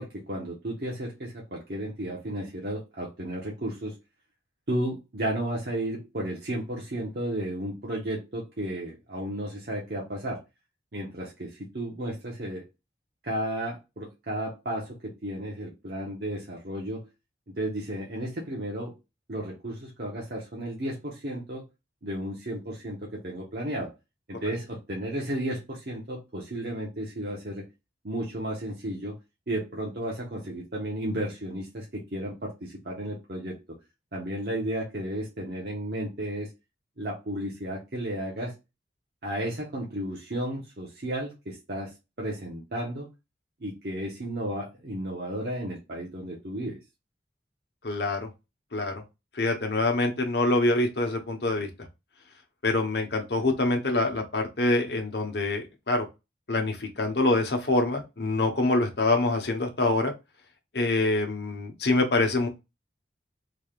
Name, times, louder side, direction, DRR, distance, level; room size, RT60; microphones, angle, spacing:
voice 1, 0.0-4.0 4.7-10.4 10.9-12.6 13.2-17.1 17.6-18.9 19.3-21.7 22.0-23.9 24.3-27.6 28.0-29.2 29.5-33.6 34.1-36.5 37.0-38.5 39.2-43.1 43.6-46.8, right 1 dB, 55° right, -3 dB, 1.0 m, -33 dB
voice 2, 47.8-48.3 48.7-49.0 49.3-51.7 52.6-56.0 56.5-60.1 60.7-62.5, left 2 dB, 65° left, 3 dB, 0.9 m, -25 dB
3.9 x 3.4 x 2.4 m, 0.24 s
head